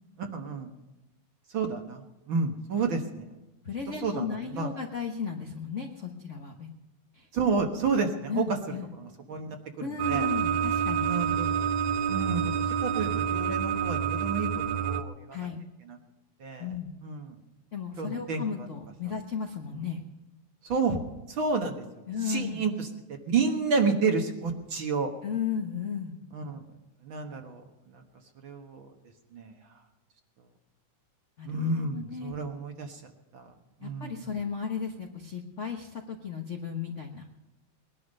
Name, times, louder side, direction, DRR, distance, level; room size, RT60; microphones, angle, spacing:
voice 1, 0.2-0.7 1.5-3.3 3.9-4.7 7.3-10.3 11.1-11.5 12.1-12.5 12.8-15.4 15.9-16.0 16.4-16.7 17.0-17.4 18.0-18.4 20.6-21.0 21.3-21.8 22.2-22.9 23.3-25.1 26.3-26.6 27.0-28.0 28.4-28.9 29.3-29.5 31.4-33.0 33.3-33.5 33.8-34.2, right 4 dB, 50° right, 4 dB, 1.8 m, -30 dB
voice 2, 3.6-6.7 7.1-7.3 8.3-8.9 9.8-11.1 15.3-15.6 16.6-17.0 17.7-20.0 22.1-22.7 25.2-26.1 31.4-31.6 31.9-32.3 33.8-37.2, left 6 dB, 70° left, 2 dB, 0.6 m, -35 dB
sound 1, 10.0-15.0, right 7 dB, 80° right, 2.0 m, -28 dB
20.5 x 11.5 x 5.4 m, 1.1 s
omnidirectional pair, 3.3 m